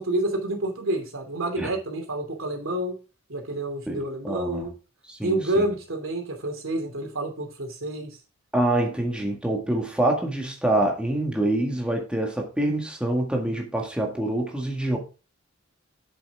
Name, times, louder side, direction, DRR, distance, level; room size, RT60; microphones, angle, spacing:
voice 1, 0.0-2.9 3.3-4.7 5.2-8.2, right 1 dB, 85° right, 2.8 m, -28 dB
voice 2, 3.9-4.7 5.1-5.7 8.5-15.0, right 1 dB, 5° right, 1.8 m, -26 dB
8.1 x 7.6 x 3.5 m
head